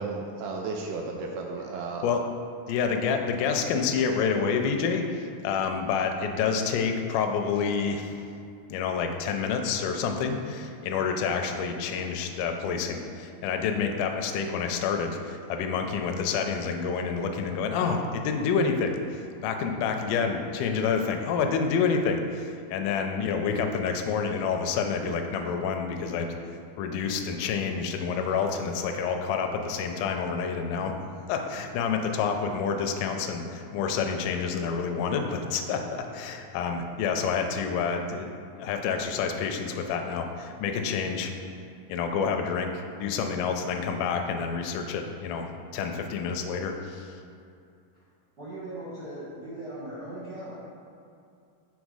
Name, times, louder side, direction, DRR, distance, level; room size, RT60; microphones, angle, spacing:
voice 1, 0.0-2.0, right 3 dB, 85° right, 1 dB, 1.8 m, -34 dB
voice 2, 2.7-8.3 8.7-26.4 26.8-30.9 31.3-38.3 38.6-41.3 41.9-47.2, left 5 dB, 80° left, 4 dB, 1.9 m, -28 dB
voice 3, 48.4-50.6, right 1 dB, 65° right, -11 dB, 1.0 m, -39 dB
6.2 x 4.0 x 4.8 m, 2.5 s
omnidirectional pair, 4.1 m